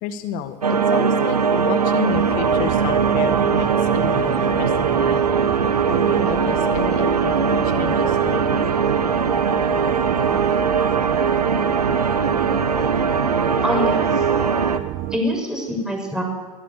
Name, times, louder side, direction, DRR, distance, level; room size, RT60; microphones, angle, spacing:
voice 1, 0.0-5.2 5.9-7.3 7.6-8.6, left 9 dB, 45° left, 9 dB, 1.8 m, -31 dB
sound 1, 0.6-14.8, right 6 dB, 85° right, 1.2 m, -20 dB
sound 2, 2.1-15.2, right 16 dB, 45° right, 1.0 m, -29 dB
voice 2, 13.6-14.2 15.1-16.2, equal, 5° right, 1 dB, 6.6 m, -24 dB
22.5 x 17.0 x 6.8 m, 1.3 s
figure-of-eight pair, 85°, 19 cm